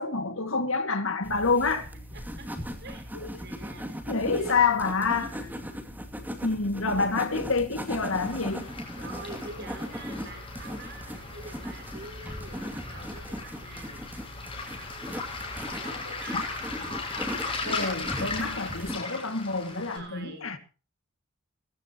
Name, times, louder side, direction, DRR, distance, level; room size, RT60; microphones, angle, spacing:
voice 1, 0.0-1.9 3.1-3.3 4.1-5.3 6.4-8.7 17.6-20.6, left 4 dB, 65° left, 2.1 m, -27 dB
sound 1, 1.2-19.0, equal, 10° right, 2.4 m, -38 dB
voice 2, 2.1-2.5 2.8-5.8 9.0-14.0 15.7-16.4 19.7-20.6, right 2 dB, 55° right, 6.0 m, -46 dB
Waves surf, 8.0-20.0, left 3 dB, 25° left, 6.1 m, -37 dB
21.5 x 16.0 x 3.0 m
head